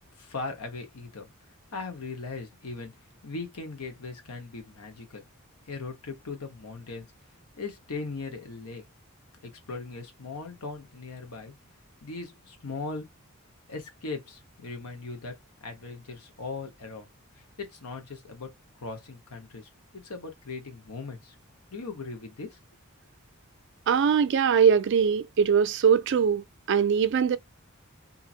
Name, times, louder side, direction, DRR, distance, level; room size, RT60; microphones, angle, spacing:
voice 1, 0.2-1.3 1.7-2.9 3.2-5.2 5.7-7.1 7.6-8.8 9.4-11.5 12.0-13.1 13.7-15.3 15.6-17.1 17.6-18.5 18.8-21.3 21.7-22.6, left 3 dB, 85° left, 1.1 m, -39 dB
voice 2, 23.9-27.4, right 7 dB, 55° right, 0.3 m, -22 dB
2.7 x 2.5 x 2.7 m
head